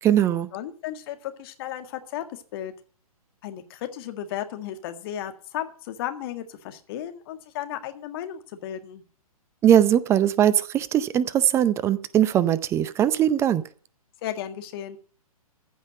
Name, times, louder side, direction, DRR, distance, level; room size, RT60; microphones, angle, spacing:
voice 1, 0.0-0.5 9.6-13.6, right 10 dB, 15° right, 0.5 m, -20 dB
voice 2, 0.5-2.7 3.4-9.0 14.2-15.0, left 11 dB, 40° left, 1.8 m, -34 dB
15.0 x 5.7 x 7.7 m
figure-of-eight pair, 125°, 19 cm